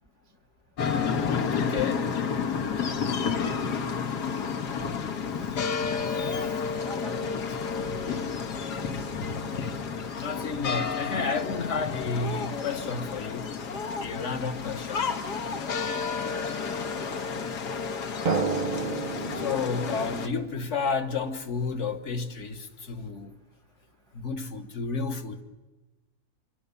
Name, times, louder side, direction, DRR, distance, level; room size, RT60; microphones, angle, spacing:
sound 1, 0.8-20.3, left 5 dB, 90° left, 1.9 m, -31 dB
voice 1, 1.6-2.1 10.0-13.5 14.0-15.1 19.3-23.3 24.1-25.4, left 4 dB, 50° left, 1.5 m, -31 dB
voice 2, 6.1-8.3 9.6-9.7 10.1-10.2, right 1 dB, 5° left, 0.7 m, -46 dB
Drum, 18.3-21.6, right 4 dB, 40° right, 0.8 m, -32 dB
27.0 x 23.0 x 7.0 m
omnidirectional pair, 1.7 m